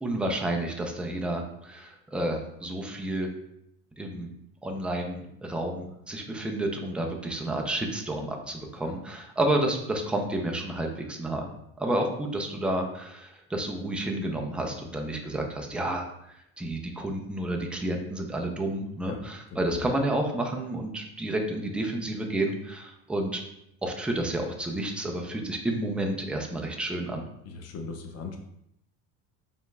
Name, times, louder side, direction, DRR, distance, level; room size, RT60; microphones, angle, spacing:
voice 1, 0.0-3.3 4.0-4.3 4.6-11.5 11.8-23.4 23.8-27.2, right 1 dB, 5° right, 2 dB, 0.4 m, -30 dB
voice 2, 19.5-19.9 27.4-28.4, left 4 dB, 45° left, 4 dB, 0.7 m, -39 dB
5.0 x 3.5 x 2.2 m, 0.79 s
cardioid pair, 135°, 35 cm